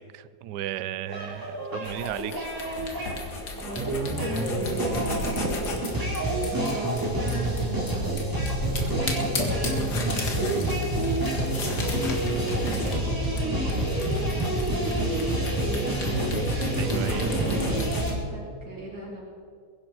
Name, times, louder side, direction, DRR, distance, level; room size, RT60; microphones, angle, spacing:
voice 1, 0.0-1.5 1.7-2.5 11.5-11.7 16.8-17.3, right 12 dB, 90° right, 17 dB, 1.2 m, -35 dB
sound 1, 1.1-18.1, right 1 dB, 10° right, 3.2 m, -27 dB
sound 2, 1.8-18.1, left 3 dB, 80° left, 2.4 m, -36 dB
voice 2, 3.6-19.2, right 2 dB, 70° right, -5 dB, 3.3 m, -39 dB
22.0 x 10.5 x 4.7 m, 2.2 s
omnidirectional pair, 1.7 m